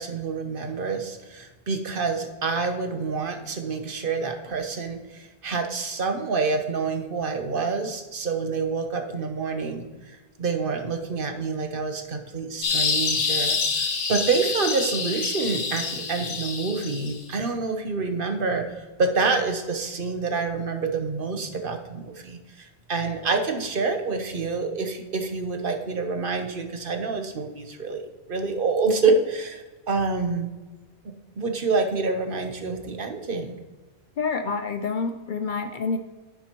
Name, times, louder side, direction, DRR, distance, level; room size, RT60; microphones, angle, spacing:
voice 1, 0.0-28.0 28.3-30.5 31.4-33.6, right 4 dB, 55° right, 5 dB, 1.0 m, -27 dB
sound 1, 12.6-17.2, left 4 dB, 85° left, 1.4 m, -27 dB
voice 2, 34.2-36.0, left 4 dB, 60° left, 8 dB, 0.6 m, -27 dB
10.0 x 7.9 x 3.0 m, 1.2 s
omnidirectional pair, 1.1 m